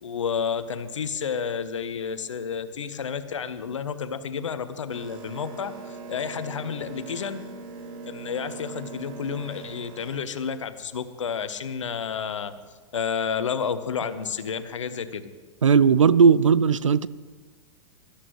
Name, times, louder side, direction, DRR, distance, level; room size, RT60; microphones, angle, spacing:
voice 1, 0.0-5.7 6.1-7.4 8.1-12.5 12.9-15.3, left 6 dB, 70° left, 12 dB, 1.0 m, -30 dB
Boat Water vehicle, 4.9-10.2, right 4 dB, 50° right, 2.6 m, -41 dB
voice 2, 15.6-17.1, right 6 dB, 75° right, 17 dB, 0.5 m, -17 dB
21.5 x 13.0 x 3.2 m, 1.4 s
figure-of-eight pair, 95°, 16 cm